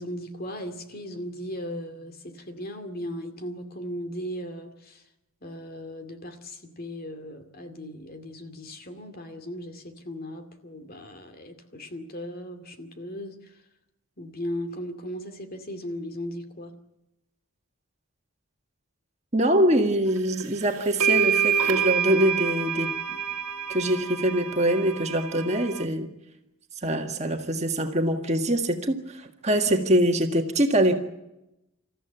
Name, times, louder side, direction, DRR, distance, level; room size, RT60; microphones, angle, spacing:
voice 1, 0.0-5.0 5.4-13.5 14.2-16.7, equal, 45° left, 2.3 m, -37 dB
voice 2, 19.3-22.9 23.7-26.1 26.8-31.0, right 1 dB, 30° right, 1.8 m, -24 dB
sound 1, 20.4-20.5 21.0-25.8, right 7 dB, 90° right, 1.7 m, -27 dB
27.0 x 14.5 x 9.1 m
head